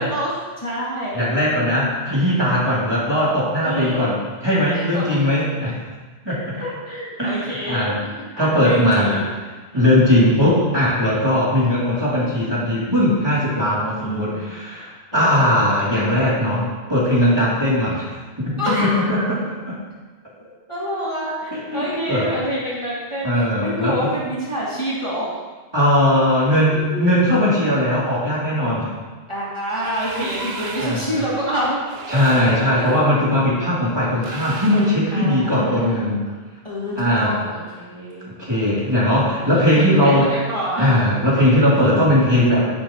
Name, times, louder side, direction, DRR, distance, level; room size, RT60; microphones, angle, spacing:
voice 1, 0.0-1.3 3.6-4.1 4.7-5.3 6.3-9.3 9.7-10.1 14.0-14.4 15.1-15.4 18.6-19.3 20.7-23.3 23.6-25.4 26.3-26.9 29.3-31.8 32.1-32.9 35.1-36.3 36.6-38.3 39.2-39.4 39.7-41.0 41.8-41.9, equal, 25° left, -9 dB, 3.2 m, -27 dB
voice 2, 1.1-4.2 4.4-5.8 6.2-6.6 7.2-8.0 8.4-9.3 9.7-19.4 19.7-19.8 21.5-22.3 23.2-24.0 25.7-28.9 30.2-30.3 30.8-31.2 32.1-36.2 37.0-37.3 38.4-40.3 40.8-42.7, left 1 dB, 25° right, -9 dB, 3.8 m, -19 dB
sound 1, 29.7-31.2 31.8-32.9 34.2-35.1, right 4 dB, 70° right, 1.2 m, -34 dB
13.0 x 11.0 x 3.4 m, 1.3 s
omnidirectional pair, 1.1 m